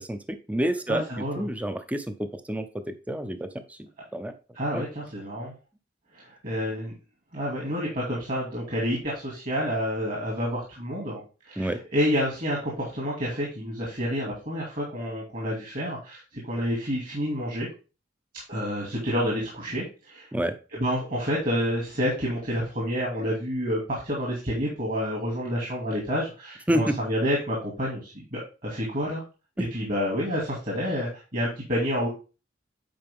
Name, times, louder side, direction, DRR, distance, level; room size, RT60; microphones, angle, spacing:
voice 1, 0.0-4.3 4.7-4.8 11.6-11.8 20.3-20.5 26.7-27.0, right 1 dB, 10° right, 9 dB, 0.5 m, -29 dB
voice 2, 0.9-1.4 4.5-5.5 6.1-6.9 7.3-11.2 11.5-17.7 18.5-20.3 20.7-29.2 29.6-32.1, equal, 50° right, -3 dB, 2.4 m, -29 dB
8.8 x 4.6 x 3.5 m, 0.32 s
head